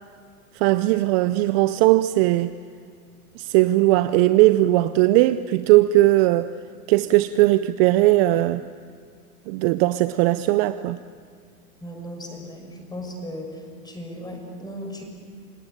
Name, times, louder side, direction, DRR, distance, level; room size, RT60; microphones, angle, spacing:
voice 1, 0.5-2.5 3.4-6.5 6.9-8.6 9.5-11.0, right 17 dB, 40° right, 13 dB, 0.7 m, -18 dB
voice 2, 11.8-13.5 13.8-15.0, equal, 10° left, 3 dB, 5.9 m, -36 dB
28.5 x 18.5 x 9.2 m, 2.2 s
hypercardioid pair, 120°, 45 cm